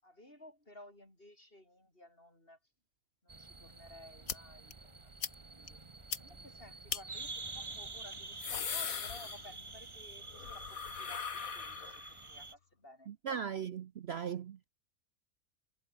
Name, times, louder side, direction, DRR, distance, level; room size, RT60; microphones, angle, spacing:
voice 1, 0.0-2.6 3.2-5.1 5.5-5.8 6.2-13.2, left 1 dB, 40° left, 8.2 m, -56 dB
sound 1, 3.3-12.5, right 3 dB, 20° right, 1.0 m, -48 dB
Having A Smoke, 4.3-4.4 4.7-4.8 5.2-5.3 5.7-5.8 6.1-6.2 6.9-7.0 8.1-9.8 10.1-12.3, left 7 dB, 70° left, 1.9 m, -39 dB
voice 2, 13.1-14.7, right 7 dB, 55° right, 0.8 m, -38 dB
omnidirectional pair, 1.5 m